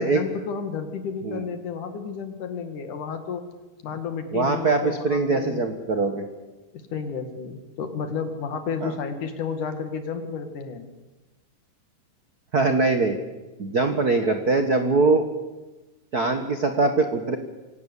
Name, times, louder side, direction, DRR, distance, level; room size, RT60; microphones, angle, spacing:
voice 1, 0.0-3.4 3.8-5.6 6.9-10.9, left 6 dB, 65° left, 8 dB, 3.5 m, -31 dB
voice 2, 4.3-6.2 8.8-8.9 12.5-13.2 13.6-15.2 16.1-17.4, right 3 dB, 55° right, 7 dB, 1.1 m, -22 dB
25.0 x 17.5 x 8.4 m, 1.2 s
omnidirectional pair, 3.9 m